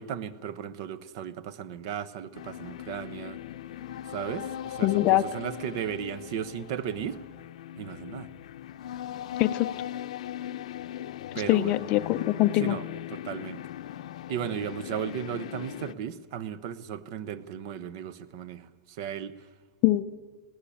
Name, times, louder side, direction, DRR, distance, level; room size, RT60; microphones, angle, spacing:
voice 1, 0.0-3.4 4.1-7.2 7.7-8.3 11.3-11.7 12.6-12.8 13.1-13.6 14.3-19.3, right 9 dB, 45° right, 18 dB, 0.8 m, -35 dB
sound 1, 2.3-15.9, left 11 dB, 80° left, 0.8 m, -39 dB
voice 2, 4.8-5.2 9.4-9.7 11.3-12.8 19.8-20.0, left 16 dB, 30° left, 12 dB, 0.5 m, -23 dB
20.0 x 17.0 x 8.5 m, 1.4 s
supercardioid pair, 180°, 3 cm